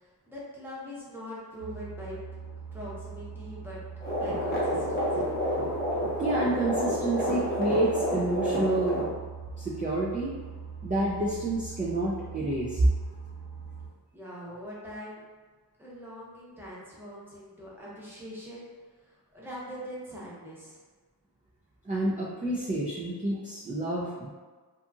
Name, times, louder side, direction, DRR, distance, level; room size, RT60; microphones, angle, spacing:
voice 1, 0.0-2.2 2.7-3.8 4.1-5.2 14.1-15.2 15.8-18.7 19.0-20.8 21.8-21.9, equal, 5° right, -7 dB, 0.7 m, -42 dB
sound 1, 1.6-13.9, right 6 dB, 80° right, 1.0 m, -42 dB
my baby's heartbeat, 4.0-9.1, equal, 25° left, 0.8 m, -29 dB
voice 2, 6.2-9.0 9.6-10.4 10.8-12.9 21.9-24.3, right 2 dB, 20° right, -6 dB, 0.3 m, -28 dB
2.7 x 2.5 x 2.3 m, 1.4 s
wide cardioid pair, 125°, 41 cm